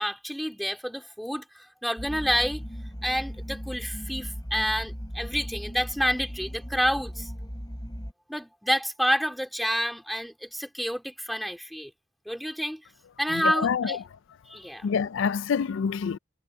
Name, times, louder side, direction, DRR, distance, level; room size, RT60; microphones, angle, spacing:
voice 1, 0.0-2.6 3.0-7.3 8.3-11.9 12.2-12.8 13.2-14.0 14.5-14.9, equal, ahead, 3.1 m, -29 dB
sound 1, 2.0-8.1, equal, 20° left, 5.8 m, -37 dB
voice 2, 13.3-14.0 14.8-16.2, left 6 dB, 80° left, 0.4 m, -27 dB
head